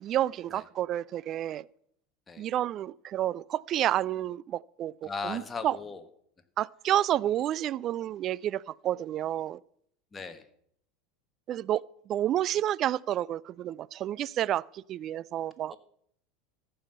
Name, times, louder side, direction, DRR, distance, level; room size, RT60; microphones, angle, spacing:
voice 1, 0.0-1.7 2.4-5.8 6.6-9.6 11.5-15.7, right 12 dB, 45° right, 0.3 m, -30 dB
voice 2, 5.0-6.0 10.1-10.5 15.7-15.8, left 4 dB, 20° left, 1.4 m, -37 dB
14.0 x 5.6 x 6.8 m
hypercardioid pair, 80°, 0 cm